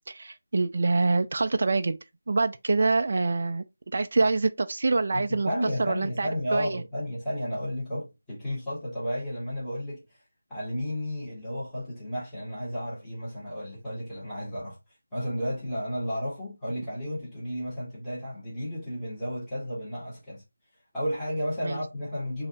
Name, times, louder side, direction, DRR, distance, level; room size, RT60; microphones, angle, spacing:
voice 1, 0.1-2.0 2.3-3.6 3.9-5.5 5.8-6.8 21.6-21.8, right 3 dB, 45° right, 0.4 m, -25 dB
voice 2, 5.1-10.0 10.5-14.8 15.1-20.4 20.9-22.5, equal, 5° left, 2.0 m, -33 dB
6.0 x 2.8 x 2.6 m
figure-of-eight pair, 160°, 0 cm